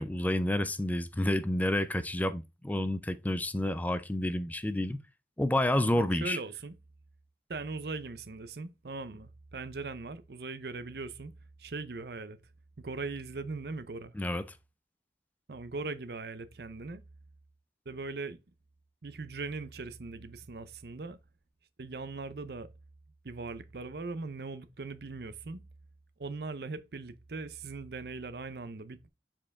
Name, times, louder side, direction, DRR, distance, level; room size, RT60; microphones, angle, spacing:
voice 1, 0.0-5.0 5.4-6.4 14.1-14.5, left 1 dB, 10° left, 0.4 m, -29 dB
voice 2, 6.0-6.7 7.5-11.3 11.6-12.4 12.8-14.1 15.5-17.0 17.9-18.4 19.0-21.2 21.8-22.7 23.2-25.6 26.2-29.1, right 3 dB, 60° right, 0.6 m, -40 dB
7.5 x 4.5 x 3.5 m
head